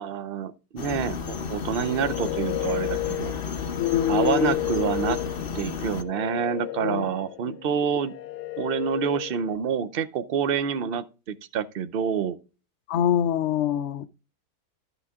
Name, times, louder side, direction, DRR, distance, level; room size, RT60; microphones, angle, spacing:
voice 1, 0.0-3.3 4.1-5.2 5.5-8.1 8.6-12.4, right 7 dB, 55° right, 0.7 m, -27 dB
sound 1, 0.8-6.0, left 6 dB, 40° left, 1.0 m, -33 dB
sound 2, 1.7-9.6, left 17 dB, 90° left, 1.2 m, -33 dB
voice 2, 3.8-5.2 6.8-7.1 7.5-7.6 12.9-14.1, left 10 dB, 65° left, 0.7 m, -25 dB
12.5 x 6.0 x 3.6 m
omnidirectional pair, 1.7 m